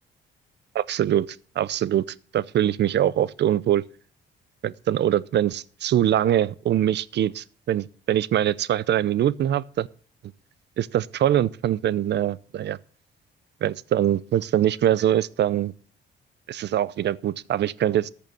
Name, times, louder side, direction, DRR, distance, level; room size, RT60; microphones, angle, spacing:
voice 1, 0.7-1.3 1.6-2.0 2.3-3.8 4.6-9.9 10.8-12.8 13.6-15.7 16.5-18.1, right 11 dB, 60° right, 0.6 m, -23 dB
14.0 x 6.8 x 6.3 m
cardioid pair, 90°, 20 cm